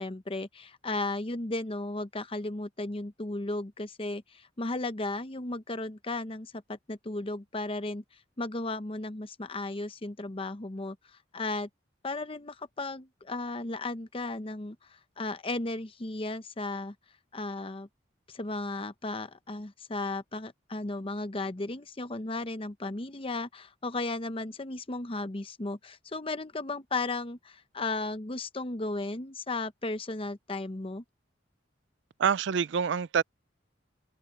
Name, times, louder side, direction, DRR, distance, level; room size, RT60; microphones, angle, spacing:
voice 1, 0.0-8.0 8.4-11.7 12.0-16.9 17.3-17.9 18.3-31.0, left 2 dB, 30° left, 0.8 m, -35 dB
voice 2, 32.2-33.2, right 7 dB, 65° right, 0.4 m, -26 dB
open air
head